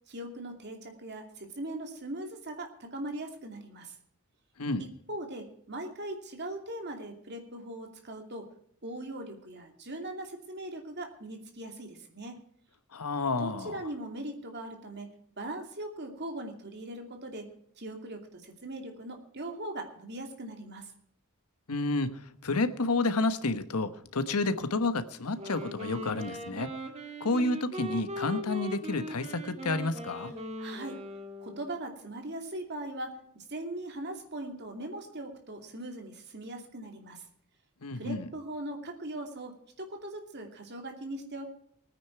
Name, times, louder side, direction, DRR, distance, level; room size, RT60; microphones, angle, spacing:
voice 1, 0.1-4.0 4.8-8.5 8.8-12.4 13.4-15.1 15.4-17.5 17.8-20.9 30.6-31.0 31.4-37.2 37.9-41.5, right 1 dB, 50° right, 4 dB, 2.6 m, -40 dB
voice 2, 12.9-13.8 21.7-26.8 27.2-30.3 37.8-38.3, left 3 dB, 85° left, 11 dB, 1.1 m, -30 dB
Wind instrument woodwind instrument, 25.3-31.8, equal, 30° right, 1.8 m, -39 dB
19.5 x 9.5 x 4.6 m, 0.67 s
head